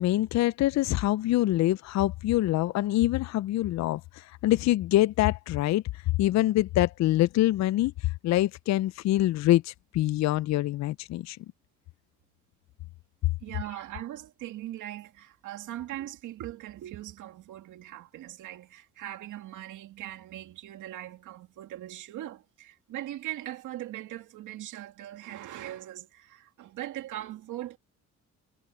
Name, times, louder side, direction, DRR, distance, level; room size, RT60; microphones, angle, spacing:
voice 1, 0.0-11.4, left 15 dB, 65° left, 0.4 m, -25 dB
voice 2, 13.4-27.8, right 13 dB, 85° right, 2.3 m, -40 dB
cardioid pair, 90°, 30 cm